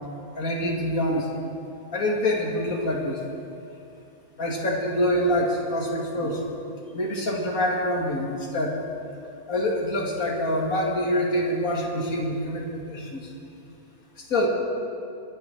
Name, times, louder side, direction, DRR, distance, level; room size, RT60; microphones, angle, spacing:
voice 1, 0.4-1.3 1.9-3.2 4.4-6.5 6.9-8.8 9.5-13.3 14.2-14.5, left 1 dB, 60° left, -1 dB, 2.6 m, -26 dB
25.0 x 10.0 x 4.5 m, 2.6 s
omnidirectional pair, 1.7 m